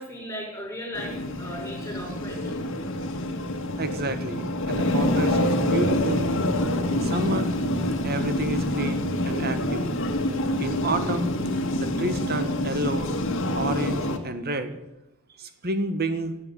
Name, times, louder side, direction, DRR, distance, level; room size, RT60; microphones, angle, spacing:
voice 1, 0.0-2.6 7.0-7.1, equal, 10° left, -1 dB, 6.5 m, -37 dB
sound 1, 0.9-14.2, left 1 dB, 60° left, 1.7 m, -26 dB
voice 2, 3.8-6.3 6.9-7.5 8.0-9.9 10.6-11.3 11.8-13.1 13.5-14.8 15.4-16.3, right 2 dB, 45° right, 9 dB, 1.5 m, -30 dB
16.0 x 8.0 x 8.1 m, 0.91 s
head